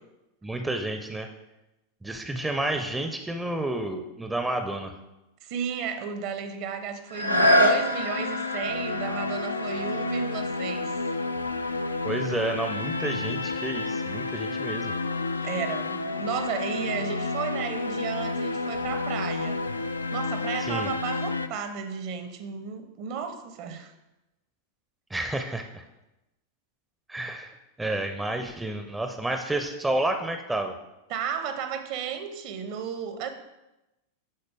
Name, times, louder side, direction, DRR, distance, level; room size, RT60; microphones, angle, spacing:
voice 1, 0.4-1.3 2.0-4.9 12.0-14.9 20.6-20.9 25.1-25.8 27.1-30.7, right 1 dB, 10° right, 6 dB, 0.5 m, -30 dB
voice 2, 5.4-10.9 15.4-23.9 31.1-33.3, right 7 dB, 45° right, 8 dB, 0.8 m, -34 dB
sound 1, 7.1-12.7 13.3-13.4, equal, 90° right, 0.7 m, -27 dB
sound 2, 7.3-21.5, left 3 dB, 80° left, 0.4 m, -31 dB
11.0 x 4.0 x 3.4 m, 0.97 s
figure-of-eight pair, 90°, 0 cm